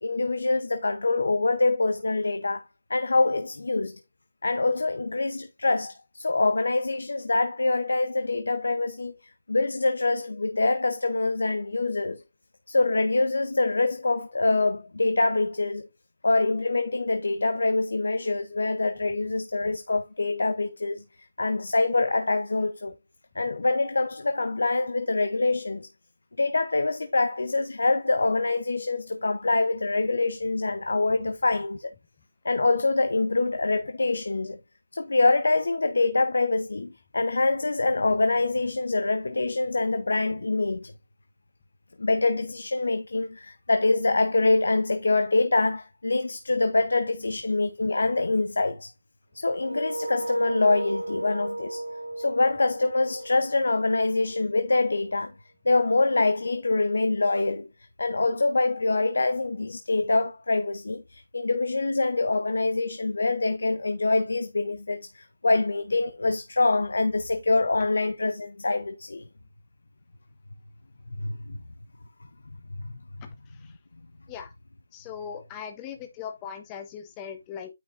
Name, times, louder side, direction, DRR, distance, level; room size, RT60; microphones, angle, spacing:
voice 1, 0.0-2.6 2.9-4.0 4.4-9.2 9.5-12.2 12.7-15.9 16.2-21.0 21.4-22.9 23.3-25.9 26.4-31.9 32.4-34.6 34.9-40.9 42.0-48.9 49.3-51.8 52.2-55.3 55.6-57.7 58.0-69.3 71.2-71.6 72.8-72.9, left 3 dB, 80° left, 0.8 m, -25 dB
sound 1, 49.6-54.4, right 1 dB, 90° right, 0.6 m, -34 dB
voice 2, 74.9-77.7, left 7 dB, 20° left, 1.2 m, -39 dB
9.2 x 6.0 x 2.6 m
figure-of-eight pair, 155°, 0 cm